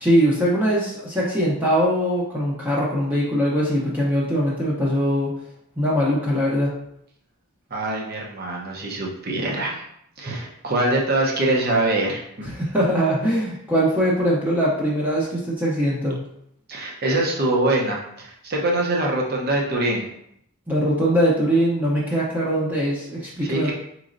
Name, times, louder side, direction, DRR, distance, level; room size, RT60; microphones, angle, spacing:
voice 1, 0.0-5.3 5.8-6.7 12.5-16.2 20.7-23.7, equal, 10° right, -6 dB, 0.7 m, -21 dB
voice 2, 7.7-9.8 10.2-12.2 16.7-20.1 23.4-23.7, right 2 dB, 45° right, -1 dB, 0.8 m, -23 dB
4.8 x 3.1 x 2.5 m, 0.73 s
head